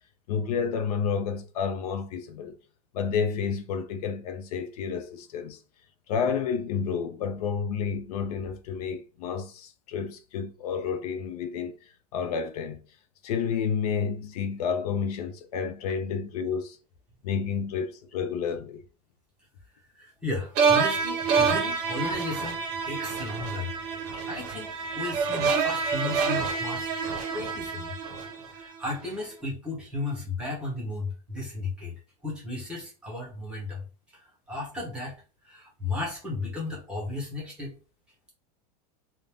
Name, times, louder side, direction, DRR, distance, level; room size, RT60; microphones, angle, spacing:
voice 1, 0.3-2.6 2.9-5.6 6.1-12.9 13.2-16.8 17.2-18.8, left 6 dB, 75° left, 0.5 m, -30 dB
voice 2, 19.9-22.6 22.9-23.7 24.2-26.9 27.3-28.0 28.5-33.8 34.1-37.7, left 2 dB, 5° right, 0.9 m, -35 dB
sound 1, 20.6-28.8, right 5 dB, 35° right, 0.7 m, -27 dB
2.5 x 2.2 x 3.3 m
supercardioid pair, 175°, 20 cm